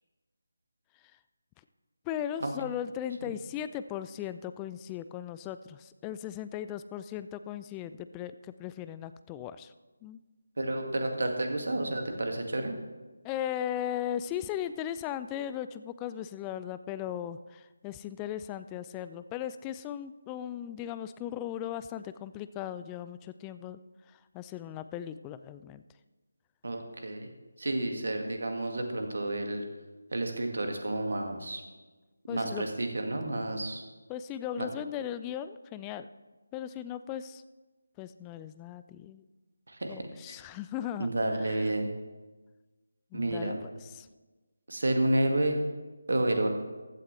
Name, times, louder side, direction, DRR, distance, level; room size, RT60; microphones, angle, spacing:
voice 1, 2.1-9.7 10.0-10.2 13.2-23.8 24.1-25.8 32.3-32.7 34.1-36.1 36.5-37.4 38.0-39.2 39.9-41.1 41.4-41.6 43.1-44.1, left 10 dB, 10° left, 12 dB, 0.3 m, -37 dB
voice 2, 10.6-12.7 26.6-27.3 27.6-29.6 30.1-31.6 32.3-33.8 34.6-34.7 39.7-40.1 41.0-41.9 43.1-43.6 44.7-45.6 46.1-46.5, right 1 dB, 55° right, 4 dB, 1.8 m, -30 dB
15.5 x 11.5 x 3.3 m, 1.2 s
figure-of-eight pair, 155°, 0 cm